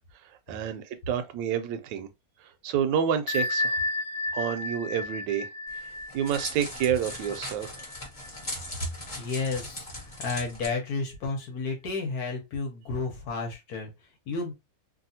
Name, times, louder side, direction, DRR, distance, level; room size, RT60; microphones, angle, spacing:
voice 1, 0.5-2.1 2.6-3.8 4.3-5.5 6.1-7.9, right 8 dB, 75° right, 1.2 m, -28 dB
Bell, 3.3-8.7, left 2 dB, 85° left, 1.4 m, -33 dB
Crackle, 5.7-10.7, left 1 dB, 25° left, 0.8 m, -39 dB
voice 2, 9.2-14.5, left 4 dB, 60° left, 1.2 m, -32 dB
2.9 x 2.7 x 2.7 m
omnidirectional pair, 2.1 m